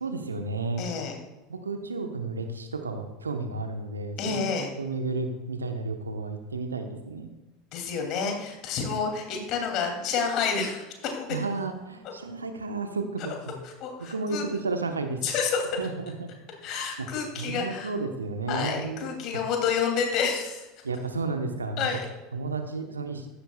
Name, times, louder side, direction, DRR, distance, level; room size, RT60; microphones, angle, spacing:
voice 1, 0.0-0.9 1.5-4.4 4.8-7.3 11.3-13.5 14.0-15.2 15.8-16.3 17.0-17.1 17.4-19.1 20.8-22.0 22.3-23.3, right 3 dB, 80° right, 6 dB, 1.1 m, -32 dB
voice 2, 0.8-1.2 4.2-4.7 7.7-11.3 13.6-14.4 15.2-15.8 16.6-17.9 18.5-20.7 21.8-22.0, left 6 dB, 45° left, 2 dB, 2.8 m, -29 dB
15.0 x 12.0 x 2.4 m, 1.1 s
figure-of-eight pair, 75°, 0 cm